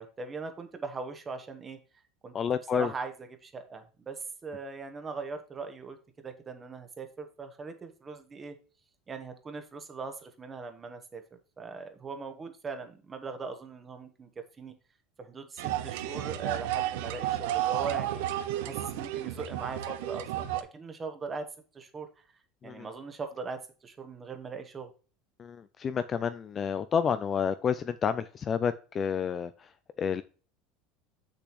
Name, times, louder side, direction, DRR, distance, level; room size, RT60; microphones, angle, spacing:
voice 1, 0.0-1.8 2.2-2.3 2.7-6.0 6.2-8.6 9.1-14.3 14.6-14.7 15.2-18.2 18.6-21.5 21.7-22.2 22.6-24.9, right 4 dB, 15° right, 7 dB, 1.0 m, -40 dB
voice 2, 2.3-2.9 22.6-22.9 25.4-30.2, left 7 dB, 20° left, 12 dB, 0.3 m, -30 dB
sound 1, 15.6-20.6, right 13 dB, 75° right, 0.8 m, -32 dB
8.1 x 6.7 x 3.0 m, 0.36 s
cardioid pair, 175°, 0 cm